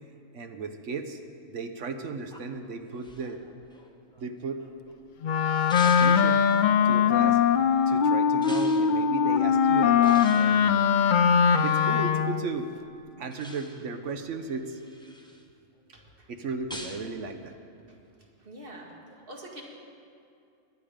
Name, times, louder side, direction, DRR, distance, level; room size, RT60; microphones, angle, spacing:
voice 1, 0.3-1.2 1.5-3.4 4.2-4.6 5.8-6.5 6.8-7.4 7.9-10.8 11.6-12.7 13.2-14.8 16.3-17.5, right 4 dB, 70° right, 7 dB, 1.1 m, -35 dB
sound 1, 2.3-4.9 5.7-6.7 8.4-8.9 10.0-11.9 13.3-14.0 14.5-15.4 16.7-17.1, left 1 dB, 5° left, 0.9 m, -45 dB
Wind instrument woodwind instrument, 5.2-12.5, left 7 dB, 80° left, 0.4 m, -21 dB
voice 2, 15.9-16.3 18.4-18.9 19.3-19.6, right 1 dB, 45° right, -1 dB, 2.0 m, -44 dB
19.0 x 11.0 x 5.1 m, 2.6 s
omnidirectional pair, 1.4 m